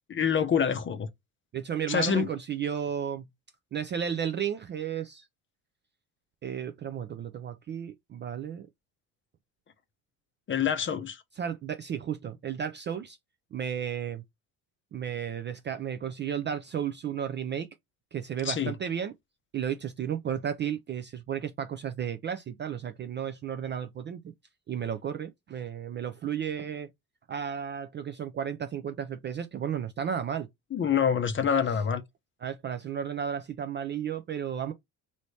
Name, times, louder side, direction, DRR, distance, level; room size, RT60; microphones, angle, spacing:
voice 1, 0.1-1.1 1.9-2.3 10.5-11.2 18.4-18.7 30.7-32.0, left 7 dB, 30° left, 0.6 m, -26 dB
voice 2, 1.5-3.3 3.7-5.3 6.4-8.7 11.4-13.2 13.5-14.2 14.9-17.7 18.1-19.1 19.5-24.3 24.7-26.9 27.3-30.5 31.7-31.8 32.4-34.7, right 8 dB, 30° right, 0.3 m, -33 dB
3.0 x 2.8 x 3.0 m
hypercardioid pair, 70°, 43 cm